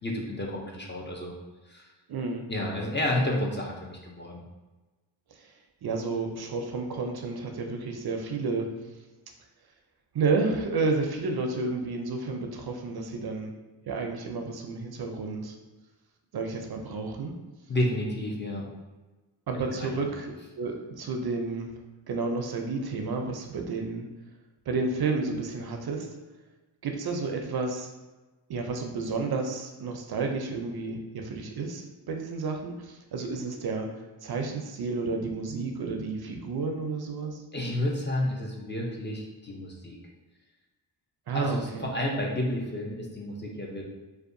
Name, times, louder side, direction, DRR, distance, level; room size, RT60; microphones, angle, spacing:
voice 1, 0.0-1.3 1.7-1.9 2.5-4.4 17.7-18.7 19.5-20.1 37.5-40.0 41.3-43.8, left 1 dB, 25° left, -1 dB, 0.5 m, -31 dB
voice 2, 2.1-2.5 5.4-5.5 5.8-8.7 10.1-13.5 13.9-15.5 16.3-17.3 19.5-21.7 22.1-24.1 24.7-26.1 26.8-27.9 28.5-33.9 34.2-37.4 41.3-41.9, right 3 dB, 55° right, 3 dB, 0.5 m, -31 dB
2.6 x 2.3 x 2.5 m, 1.2 s
cardioid pair, 55°, 46 cm